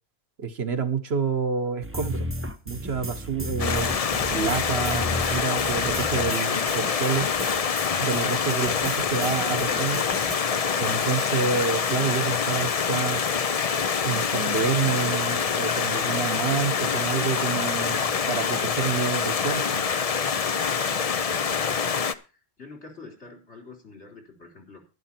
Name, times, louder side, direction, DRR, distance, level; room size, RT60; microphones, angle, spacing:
voice 1, 0.4-2.3 2.7-7.3 8.0-10.1 10.8-13.2 14.0-19.9, right 6 dB, 60° right, 1.3 m, -28 dB
sound 1, 1.8-10.4, equal, 15° right, 0.8 m, -34 dB
Stream, 3.6-22.1, left 6 dB, 40° left, 0.6 m, -25 dB
voice 2, 21.8-24.8, left 3 dB, 70° left, 3.8 m, -46 dB
11.5 x 11.0 x 4.4 m
omnidirectional pair, 1.2 m